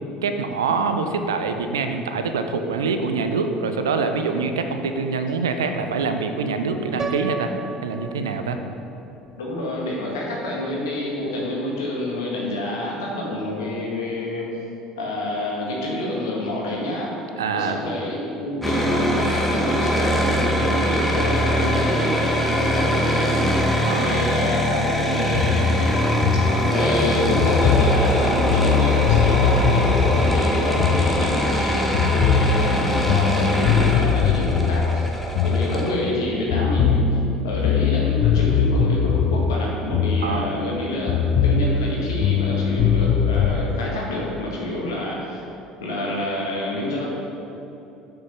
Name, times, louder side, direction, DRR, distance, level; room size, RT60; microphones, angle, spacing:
voice 1, 0.2-7.5 7.8-8.6 17.4-17.8 23.8-24.2 40.2-40.7, right 4 dB, 80° right, 7 dB, 0.6 m, -25 dB
Piano, 7.0-9.0, right 3 dB, 25° right, 0.5 m, -33 dB
voice 2, 9.4-14.5 15.0-17.1 17.5-23.4 24.0-25.9 26.3-35.1 35.4-45.4 45.8-47.0, left 1 dB, 75° left, -4 dB, 1.9 m, -28 dB
sound 1, 18.6-35.9, equal, 10° left, 1.4 m, -22 dB
sound 2, 25.3-31.6 31.9-36.2 36.5-40.8 41.1-43.6, left 6 dB, 60° left, 0.4 m, -21 dB
6.8 x 6.3 x 5.6 m, 3.0 s
hypercardioid pair, 65°, 2 cm